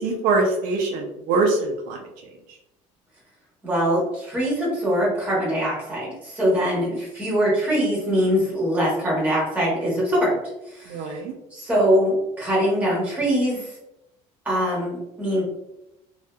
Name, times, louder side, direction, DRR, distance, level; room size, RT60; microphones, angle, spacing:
voice 1, 0.0-2.0 10.9-11.3, right 3 dB, 75° right, 1 dB, 0.5 m, -23 dB
voice 2, 3.6-10.4 10.7-11.1 11.5-13.7 14.4-15.4, equal, 10° right, -6 dB, 1.0 m, -23 dB
2.7 x 2.4 x 2.2 m, 0.89 s
cardioid pair, 150°, 14 cm